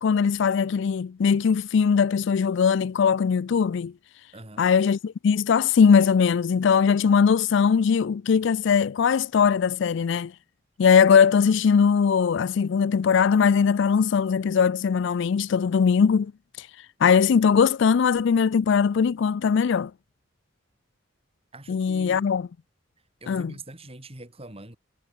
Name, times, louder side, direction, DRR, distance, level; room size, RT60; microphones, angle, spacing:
voice 1, 0.0-3.9 4.6-10.3 10.8-16.3 16.6-16.7 17.0-19.9 21.7-22.5 23.3-23.5, left 6 dB, 65° left, 0.4 m, -20 dB
voice 2, 4.3-4.7 21.5-22.3 23.2-24.8, right 2 dB, 30° right, 4.1 m, -43 dB
head